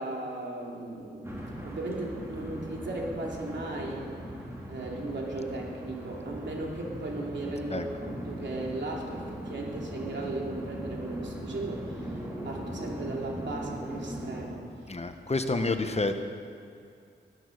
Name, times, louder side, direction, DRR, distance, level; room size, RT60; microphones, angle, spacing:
voice 1, 0.0-1.4 1.6-4.1 4.7-14.7, right 2 dB, 75° right, -2 dB, 2.9 m, -36 dB
sound 1, 1.2-14.5, equal, 15° right, 3.2 m, -39 dB
voice 2, 14.9-16.3, left 2 dB, 35° left, 8 dB, 1.0 m, -29 dB
13.0 x 12.5 x 6.5 m, 2.4 s
wide cardioid pair, 70°, 19 cm